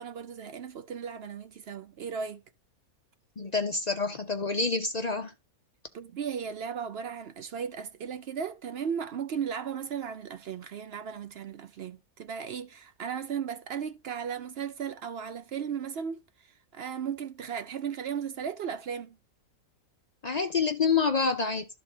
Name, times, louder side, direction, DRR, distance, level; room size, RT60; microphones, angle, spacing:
voice 1, 0.0-2.4 5.9-19.2, right 7 dB, 60° right, 0.7 m, -36 dB
voice 2, 3.4-5.3 20.2-21.7, left 4 dB, 45° left, 0.5 m, -27 dB
12.0 x 4.1 x 4.4 m
omnidirectional pair, 1.5 m